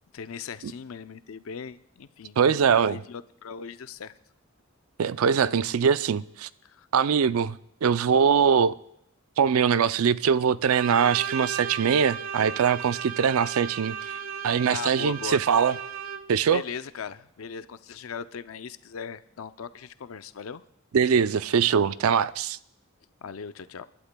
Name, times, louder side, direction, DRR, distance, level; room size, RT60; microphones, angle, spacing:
voice 1, 0.1-4.1 6.6-6.9 14.7-15.4 16.5-20.6 23.2-23.8, left 6 dB, 80° left, 0.5 m, -38 dB
voice 2, 2.4-3.0 5.0-6.5 6.9-8.8 9.4-14.0 14.4-15.7 16.3-16.6 20.9-22.6, right 7 dB, 85° right, 0.4 m, -22 dB
Bowed string instrument, 10.6-16.5, right 7 dB, 65° right, 0.8 m, -35 dB
29.5 x 11.5 x 2.2 m
head